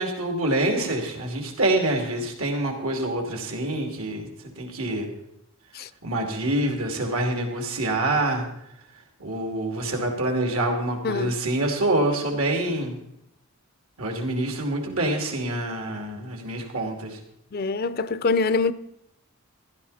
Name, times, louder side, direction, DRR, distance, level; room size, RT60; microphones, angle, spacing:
voice 1, 0.0-4.3 4.6-5.1 6.0-8.4 9.2-13.0 14.0-17.2, right 1 dB, 75° right, 2.8 m, -26 dB
voice 2, 11.0-11.4 17.5-18.7, left 4 dB, 45° left, 0.5 m, -24 dB
15.0 x 12.5 x 4.2 m
head